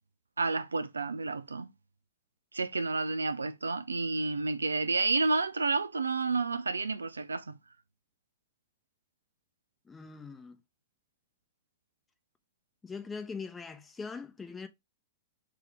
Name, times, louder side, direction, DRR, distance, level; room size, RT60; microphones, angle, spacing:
voice 1, 0.4-1.7 2.5-7.5, right 3 dB, 85° right, 0.4 m, -30 dB
voice 2, 9.9-10.6 12.8-14.7, left 5 dB, 15° left, 0.8 m, -41 dB
3.8 x 2.8 x 4.8 m
figure-of-eight pair, 105°, 0 cm